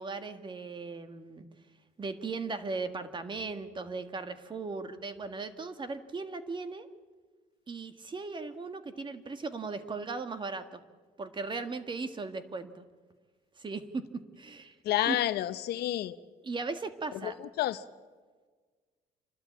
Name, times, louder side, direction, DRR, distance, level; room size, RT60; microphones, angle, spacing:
voice 1, 0.0-1.5 2.0-6.9 7.7-10.8 11.2-12.8 13.6-14.1 14.4-14.8 15.1-15.2 16.4-17.4, right 4 dB, 30° right, 9 dB, 1.7 m, -37 dB
voice 2, 14.8-16.2 17.2-17.8, left 13 dB, 75° left, 13 dB, 0.9 m, -30 dB
29.0 x 12.5 x 8.6 m, 1.5 s
cardioid pair, 110°, 17 cm